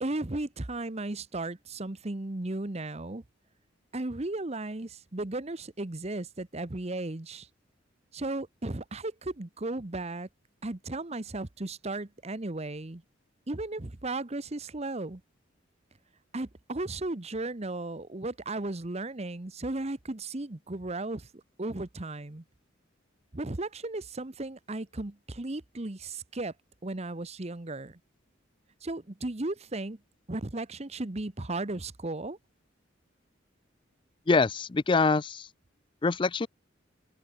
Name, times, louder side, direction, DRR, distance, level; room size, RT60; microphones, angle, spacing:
voice 1, 0.0-3.2 3.9-7.5 8.1-10.3 10.6-13.0 13.5-15.2 16.3-22.4 23.3-26.5 26.8-28.0 28.8-30.0 30.3-32.4, right 2 dB, 35° right, 1.0 m, -35 dB
voice 2, 34.3-35.5 36.0-36.5, left 4 dB, 25° left, 0.4 m, -24 dB
head